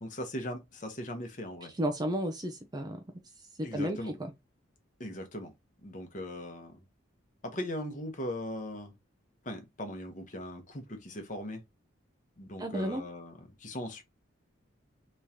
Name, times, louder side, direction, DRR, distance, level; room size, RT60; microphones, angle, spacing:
voice 1, 0.0-1.7 3.6-4.1 5.0-5.5 5.8-6.8 7.4-8.9 9.4-11.6 12.4-14.0, left 1 dB, 40° left, 1.0 m, -39 dB
voice 2, 1.8-3.0 3.6-4.3 12.6-13.0, equal, 20° right, 0.5 m, -33 dB
3.6 x 3.1 x 2.8 m
head